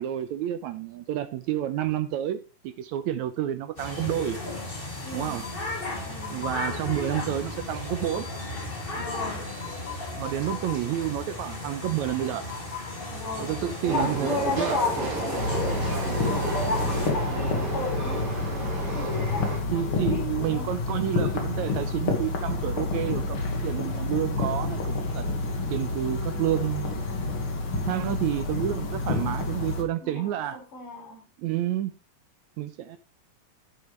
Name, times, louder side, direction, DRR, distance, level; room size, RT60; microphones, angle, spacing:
voice 1, 0.0-4.4 5.1-5.5 6.3-8.3 10.2-12.5 13.4-14.8 19.7-25.3 25.7-27.2 27.9-30.6 31.4-31.9 32.6-33.0, right 12 dB, 75° right, 1.7 m, -29 dB
sound 1, 3.8-17.1, left 2 dB, 20° left, 2.1 m, -35 dB
voice 2, 5.0-5.5 6.0-6.5 9.0-9.5 13.1-18.3 18.8-20.7 27.7-28.1 30.0-31.2, left 3 dB, 70° left, 5.2 m, -34 dB
Train, 13.9-19.6, right 3 dB, 45° right, 4.5 m, -33 dB
sound 2, 15.4-29.8, left 3 dB, 45° left, 2.4 m, -29 dB
11.0 x 10.0 x 3.3 m
omnidirectional pair, 3.9 m